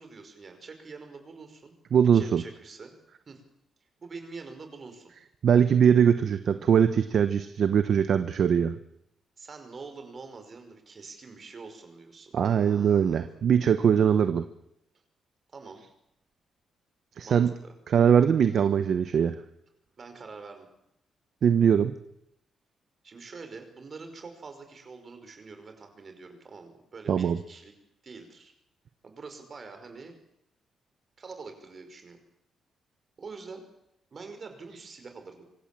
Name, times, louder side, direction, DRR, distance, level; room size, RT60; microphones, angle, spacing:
voice 1, 0.0-1.7 2.1-2.9 3.3-3.4 4.0-5.1 9.4-13.3 15.5-15.8 17.2-17.7 20.0-20.7 23.0-27.7 28.0-28.5 29.0-30.1 31.2-32.2 33.2-33.6 34.1-35.5, right 4 dB, 35° right, 7 dB, 5.3 m, -45 dB
voice 2, 1.9-2.4 5.4-8.8 12.3-14.4 17.2-17.5 17.9-19.4 21.4-21.9 27.1-27.4, right 8 dB, 50° right, 10 dB, 1.0 m, -21 dB
26.0 x 24.5 x 7.6 m, 0.82 s
cardioid pair, 165°, 0 cm